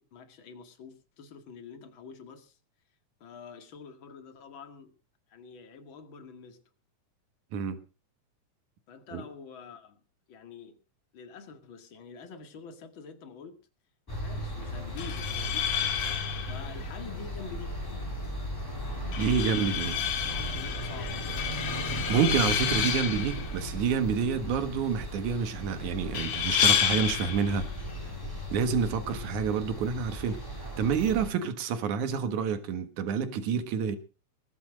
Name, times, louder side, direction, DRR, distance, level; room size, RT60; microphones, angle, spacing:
voice 1, 0.0-2.6 3.2-4.9 5.3-6.6 8.9-10.0 10.3-10.8 11.1-13.6 14.1-15.9 16.2-17.7 19.4-19.9 20.2-21.2, left 5 dB, 45° left, 2.6 m, -47 dB
sound 1, 14.1-31.3, right 1 dB, 5° left, 3.5 m, -37 dB
sound 2, 14.9-29.9, left 9 dB, 80° left, 3.1 m, -32 dB
voice 2, 19.2-20.0 22.1-27.7 28.5-34.0, right 6 dB, 80° right, 3.0 m, -28 dB
21.0 x 7.2 x 6.3 m
omnidirectional pair, 3.4 m